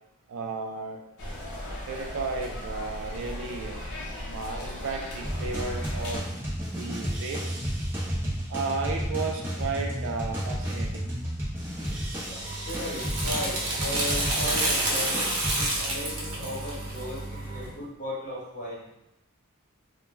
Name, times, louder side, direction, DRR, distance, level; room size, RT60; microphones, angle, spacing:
voice 1, 0.3-1.0 1.9-3.8 4.3-6.4 6.7-7.6 8.5-11.2, right 4 dB, 65° right, 2 dB, 0.4 m, -34 dB
sound 1, 1.2-6.2, left 1 dB, 55° left, 0.6 m, -37 dB
sound 2, 5.2-15.7, equal, 10° right, 0.7 m, -32 dB
sound 3, 12.2-17.7, right 1 dB, 85° right, 0.8 m, -29 dB
voice 2, 12.6-18.9, left 1 dB, 40° left, -7 dB, 1.1 m, -36 dB
2.3 x 2.1 x 3.2 m, 0.83 s
head